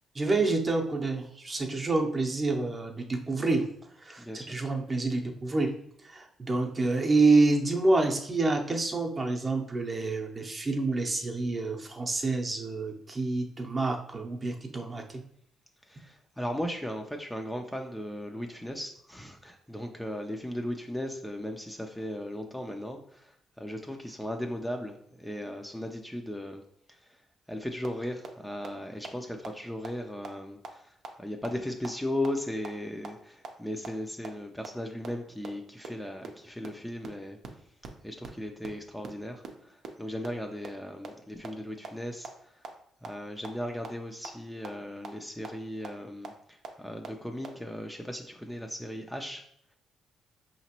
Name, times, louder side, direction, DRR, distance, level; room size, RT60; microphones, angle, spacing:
voice 1, 0.1-3.7 4.0-5.7 6.0-15.2, right 3 dB, 30° right, 2 dB, 0.7 m, -27 dB
voice 2, 15.8-26.6 26.9-27.2 27.5-37.4 38.0-42.7 43.0-49.4, left 1 dB, 5° left, 3 dB, 0.4 m, -37 dB
sound 1, 27.8-27.9 28.2-28.3 28.6-28.7 29.0-29.1 29.4-29.5 29.8-29.9 30.2-30.3 30.6-30.7 31.0-31.1 31.4-31.5 31.8-31.9 32.2-32.3 32.6-32.7 33.0-33.1 33.4-33.5 33.8-33.9 34.2-34.3 34.6-34.7 35.0-35.1 35.4-35.5 35.8-35.9 36.2-36.3 36.6-36.7 37.0-37.1 37.4-37.5 37.8-37.9 38.2-38.3 38.6-38.7 39.0-39.1 39.4-39.5 39.8-39.9 40.2-40.3 40.6-40.7 41.0-41.1 41.4-41.5 41.8-41.9 42.2-42.3 42.6-42.7 43.0-43.1 43.4-43.5 43.8-43.9 44.2-44.3 44.6-44.7 45.0-45.1 45.4-45.5 45.8-45.9 46.2-46.3 46.6-46.7 47.0-47.1 47.4-47.5, right 6 dB, 70° right, 0.6 m, -39 dB
5.0 x 2.9 x 2.9 m, 0.69 s
cardioid pair, 90°, 0 cm